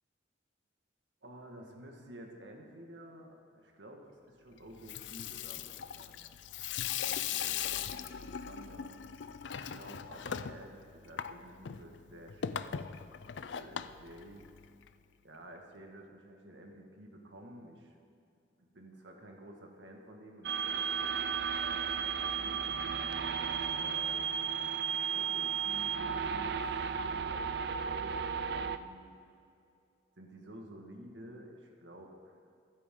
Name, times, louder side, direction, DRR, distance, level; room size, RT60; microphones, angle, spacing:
voice 1, 1.2-6.3 6.7-8.9 9.5-13.0 13.5-14.4 15.2-18.0 18.6-22.7 23.6-24.3 24.9-26.6 26.9-29.0 30.2-32.5, right 1 dB, 80° right, 1 dB, 1.8 m, -52 dB
Water tap faucet / Sink (filling or washing), 4.7-14.9, left 8 dB, 80° left, 0.5 m, -39 dB
sound 1, 20.4-28.8, right 7 dB, 60° right, 0.5 m, -34 dB
25.0 x 8.4 x 3.8 m, 2.5 s
head